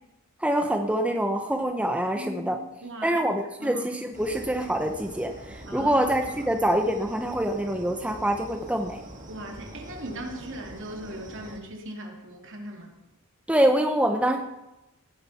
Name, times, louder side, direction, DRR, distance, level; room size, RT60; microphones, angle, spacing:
voice 1, 0.4-2.6 3.0-9.0 13.5-14.4, right 1 dB, 5° right, 4 dB, 0.7 m, -25 dB
voice 2, 2.1-3.2 3.6-3.8 5.7-6.6 9.3-12.9, right 1 dB, 60° right, 2 dB, 2.5 m, -39 dB
sound 1, 4.1-11.6, right 1 dB, 35° right, 1.8 m, -44 dB
18.0 x 10.0 x 4.2 m, 0.94 s
head